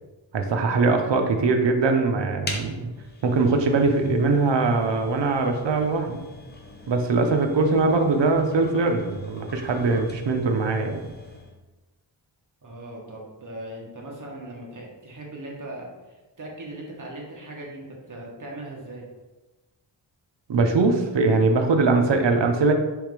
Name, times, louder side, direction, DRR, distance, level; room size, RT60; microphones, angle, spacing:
voice 1, 0.3-2.9 3.2-6.2 6.9-11.1 20.5-22.7, right 3 dB, 65° right, 5 dB, 0.7 m, -21 dB
sound 1, 2.4-11.6, left 2 dB, 20° left, 0.7 m, -42 dB
voice 2, 12.6-15.9 16.4-19.0, right 1 dB, 40° right, -2 dB, 1.2 m, -39 dB
3.5 x 3.3 x 4.7 m, 1.1 s
wide cardioid pair, 115°, 46 cm